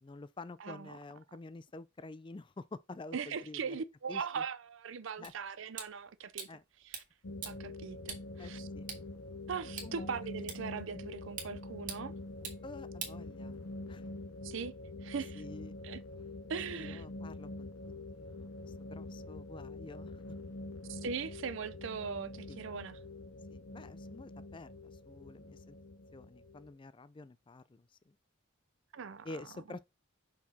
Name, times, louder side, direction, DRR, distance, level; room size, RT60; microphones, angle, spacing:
voice 1, 0.0-3.8 4.1-4.4 5.2-5.3 6.5-6.6 8.4-8.9 9.8-10.1 12.6-13.6 13.9-14.0 15.4-15.8 16.7-17.7 18.1-20.2 22.5-22.6 23.5-25.8 26.1-28.2 29.2-29.9, left 3 dB, 25° left, 0.3 m, -49 dB
voice 2, 0.6-1.0 3.1-6.5 6.8-7.0 7.4-8.7 9.5-12.1 14.4-14.7 15.0-15.4 15.8-16.0 16.5-17.0 20.9-23.0 28.9-29.4, right 6 dB, 60° right, 0.5 m, -40 dB
sound 1, 5.2-13.8, right 6 dB, 40° right, 1.6 m, -48 dB
sound 2, 7.2-26.7, left 2 dB, 75° left, 0.8 m, -45 dB
5.8 x 4.7 x 4.2 m
head